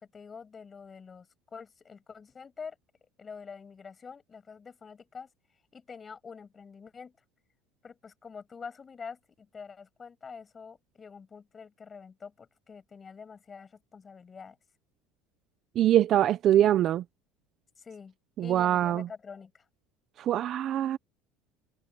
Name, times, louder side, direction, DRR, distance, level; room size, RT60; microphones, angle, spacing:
voice 1, 0.0-2.8 3.2-5.3 5.7-7.2 7.8-14.6 17.8-19.6, left 5 dB, 20° left, 7.6 m, -46 dB
voice 2, 15.8-17.0 18.4-19.1 20.2-21.0, right 11 dB, 35° right, 0.5 m, -23 dB
cardioid pair, 165°, 0 cm